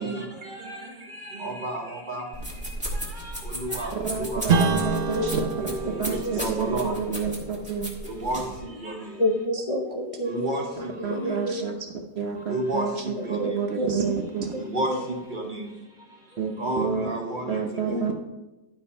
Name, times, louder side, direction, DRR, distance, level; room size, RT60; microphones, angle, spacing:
voice 1, 0.0-4.4 5.6-7.0 8.0-9.2 10.2-11.5 12.5-13.6 14.0-14.2 14.5-18.1, right 1 dB, 30° right, 2 dB, 1.1 m, -33 dB
sound 1, 2.3-8.6, equal, 5° right, 1.8 m, -35 dB
voice 2, 3.9-7.9 11.0-11.8 12.1-14.6 16.4-17.1 17.4-18.1, right 6 dB, 55° right, 4 dB, 0.7 m, -29 dB
Strum, 4.5-9.4, right 4 dB, 90° right, 0.5 m, -29 dB
voice 3, 9.2-10.6 11.4-11.6 13.4-14.0 14.9-15.0 17.9-18.1, left 1 dB, 60° left, 0 dB, 0.3 m, -28 dB
12.0 x 5.3 x 4.3 m, 1.1 s
omnidirectional pair, 2.0 m